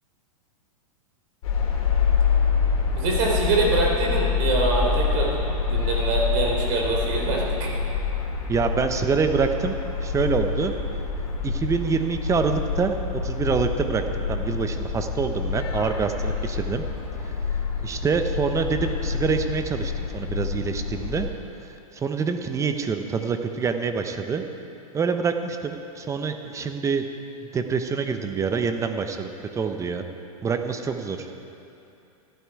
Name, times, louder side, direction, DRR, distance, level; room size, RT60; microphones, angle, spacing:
sound 1, 1.4-21.3, left 5 dB, 65° left, 2.8 m, -26 dB
voice 1, 2.9-5.3 5.6-7.7, right 3 dB, 50° right, -1 dB, 3.4 m, -24 dB
voice 2, 8.5-10.7 11.4-16.8 17.2-17.3 17.8-21.3 21.6-24.4 24.9-27.1 27.4-30.0 30.4-31.3, right 5 dB, 15° right, 7 dB, 0.7 m, -26 dB
13.5 x 11.5 x 4.7 m, 2.9 s
hypercardioid pair, 125°, 19 cm